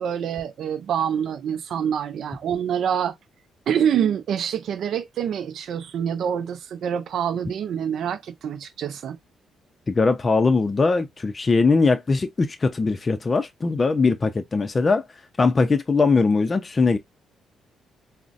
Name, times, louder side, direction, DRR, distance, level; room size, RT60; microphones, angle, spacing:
voice 1, 0.0-3.1 3.7-9.2, right 8 dB, 70° right, 0.3 m, -26 dB
voice 2, 9.9-15.1 15.4-17.0, left 4 dB, 30° left, 0.5 m, -20 dB
3.8 x 2.1 x 2.5 m
cardioid pair, 90°, 0 cm